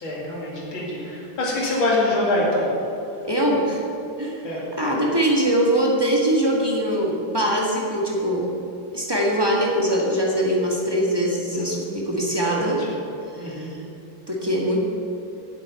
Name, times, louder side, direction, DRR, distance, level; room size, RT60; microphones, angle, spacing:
voice 1, 0.0-2.7 4.4-4.6 11.5-12.0 12.3-13.0 13.4-13.7, left 1 dB, 75° left, -5 dB, 3.0 m, -25 dB
voice 2, 3.2-3.8 4.2-4.5 4.8-8.5 8.9-12.8 13.3-13.8 14.3-14.8, right 1 dB, 15° right, -3 dB, 1.4 m, -22 dB
8.3 x 7.6 x 9.0 m, 2.6 s
omnidirectional pair, 2.2 m